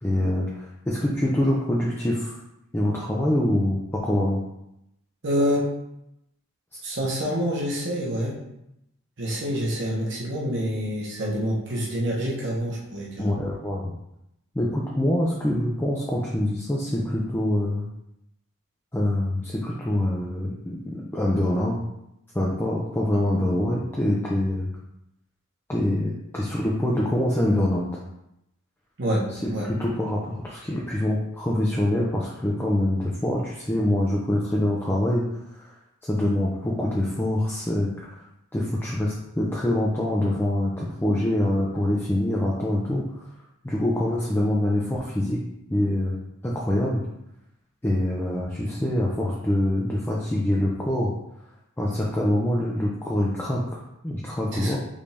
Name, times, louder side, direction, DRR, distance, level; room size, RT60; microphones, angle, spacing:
voice 1, 0.0-2.3 2.7-4.4 6.7-6.8 13.2-13.9 14.5-17.9 18.9-21.8 22.3-24.7 25.7-27.9 29.3-35.3 35.6-35.8 36.1-38.1 38.5-43.0 43.6-45.4 45.7-46.2 46.4-47.0 47.8-51.1 51.8-54.8, left 1 dB, 10° left, -4 dB, 0.4 m, -25 dB
voice 2, 5.2-5.7 6.8-8.3 9.2-13.3 29.0-29.7 54.5-54.7, equal, 55° right, -4 dB, 1.1 m, -27 dB
5.0 x 2.7 x 3.4 m, 0.83 s
head